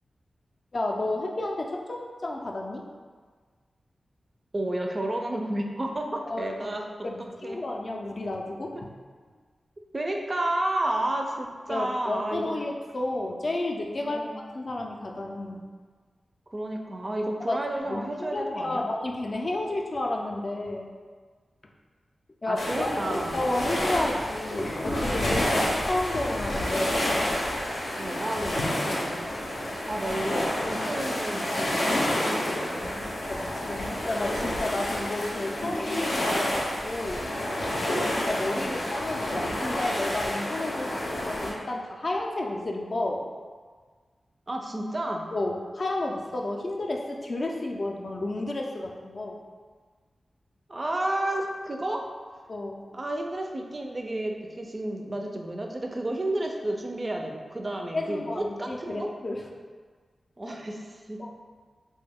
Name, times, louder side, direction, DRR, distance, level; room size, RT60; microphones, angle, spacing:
voice 1, 0.7-2.8 6.3-6.8 7.0-8.9 11.7-15.7 17.4-17.6 17.8-20.9 22.4-23.0 23.3-25.5 25.9-27.0 33.1-37.3 37.9-43.3 45.3-49.4 52.5-52.8 57.9-59.5 61.2-61.3, left 2 dB, 50° left, 0 dB, 0.4 m, -31 dB
voice 2, 4.5-6.8 7.4-7.6 8.7-8.8 9.9-12.7 14.0-14.4 16.5-18.8 22.5-23.4 25.3-25.7 28.0-29.2 29.9-30.4 30.6-33.2 38.6-38.8 44.5-45.2 50.7-52.1 52.9-59.1 60.4-61.3, right 1 dB, 35° right, 2 dB, 0.3 m, -31 dB
sound 1, 22.6-41.5, left 1 dB, 90° left, 0.6 m, -29 dB
3.1 x 2.1 x 3.4 m, 1.5 s
wide cardioid pair, 75°, 0 cm